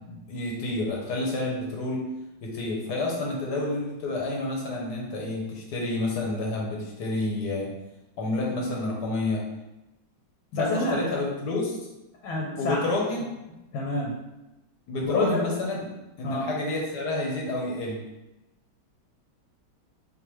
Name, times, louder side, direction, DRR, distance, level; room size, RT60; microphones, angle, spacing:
voice 1, 0.0-2.0 2.4-7.7 8.2-9.4 10.6-11.8 12.6-13.3 14.9-15.8 16.2-18.0, left 2 dB, 65° left, -2 dB, 1.2 m, -29 dB
voice 2, 10.5-11.1 12.2-12.8 13.7-14.1 15.0-15.4 16.2-16.5, left 2 dB, 80° left, -3 dB, 1.4 m, -27 dB
3.8 x 3.3 x 3.0 m, 1.0 s
omnidirectional pair, 2.2 m